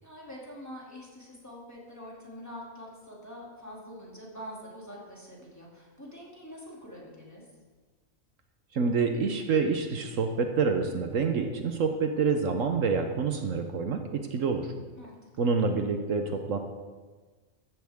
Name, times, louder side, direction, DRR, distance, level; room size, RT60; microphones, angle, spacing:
voice 1, 0.0-7.5 15.0-15.5, equal, 10° left, -4 dB, 2.7 m, -45 dB
voice 2, 8.7-14.7 15.4-16.6, right 5 dB, 70° right, 5 dB, 1.2 m, -27 dB
14.0 x 11.0 x 3.6 m, 1.4 s
omnidirectional pair, 1.4 m